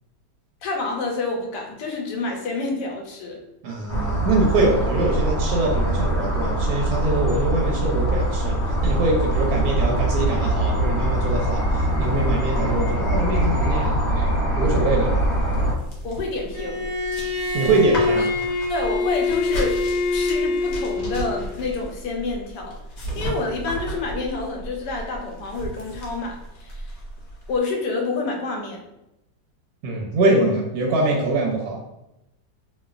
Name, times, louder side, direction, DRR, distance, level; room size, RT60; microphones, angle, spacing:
voice 1, 0.6-3.4 16.0-16.8 17.9-18.1 18.7-19.8 20.1-22.8 23.1-26.9 27.5-28.8, left 3 dB, 80° left, 1 dB, 1.2 m, -28 dB
voice 2, 3.6-8.6 8.8-15.1 17.5-18.3 19.5-19.6 29.8-31.8, right 2 dB, 75° right, -2 dB, 1.0 m, -23 dB
sound 1, 3.9-15.7, right 1 dB, 30° left, 1.0 m, -22 dB
sound 2, 14.9-27.6, right 1 dB, 65° left, 1.0 m, -35 dB
Bowed string instrument, 16.5-21.4, left 3 dB, 45° left, 0.6 m, -24 dB
3.1 x 2.1 x 2.4 m, 0.88 s
omnidirectional pair, 1.8 m